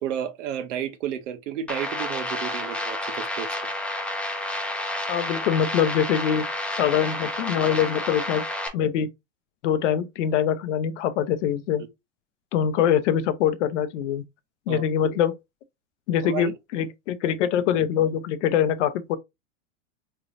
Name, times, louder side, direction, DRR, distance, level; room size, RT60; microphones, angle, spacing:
voice 1, 0.0-3.5 14.7-14.9 16.2-16.5, right 9 dB, 75° right, 1.0 m, -32 dB
sound 1, 1.7-8.7, left 1 dB, 5° left, 0.8 m, -30 dB
voice 2, 5.1-6.4 6.8-8.4 8.7-9.1 9.6-11.8 12.5-14.2 14.7-15.3 16.1-19.2, left 9 dB, 70° left, 0.7 m, -23 dB
3.8 x 3.2 x 2.5 m
hypercardioid pair, 115°, 37 cm